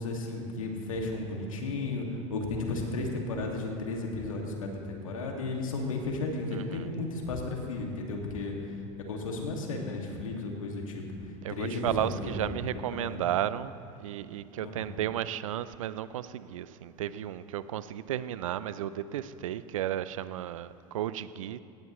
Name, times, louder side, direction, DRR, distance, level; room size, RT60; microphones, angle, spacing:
voice 1, 0.0-8.5 9.1-11.0 11.5-12.5 12.9-13.3 14.6-14.9, left 2 dB, 85° left, 1 dB, 2.2 m, -34 dB
voice 2, 6.5-6.9 11.4-13.7 14.0-21.6, right 12 dB, 80° right, 15 dB, 0.6 m, -33 dB
18.0 x 16.5 x 3.2 m, 2.7 s
hypercardioid pair, 80°, 17 cm